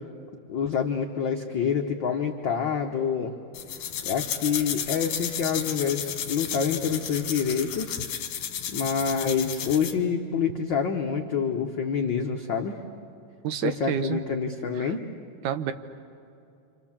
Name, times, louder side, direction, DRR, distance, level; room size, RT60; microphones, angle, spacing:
voice 1, 0.5-3.3 4.0-8.0 8.7-12.8 13.6-15.0, left 6 dB, 75° left, 3 dB, 1.0 m, -27 dB
sound 1, 3.5-10.0, left 9 dB, 60° left, 2.0 m, -33 dB
voice 2, 13.4-14.2 14.8-14.9 15.4-15.7, right 9 dB, 80° right, 10 dB, 2.4 m, -29 dB
27.5 x 26.5 x 7.3 m, 2.6 s
omnidirectional pair, 3.7 m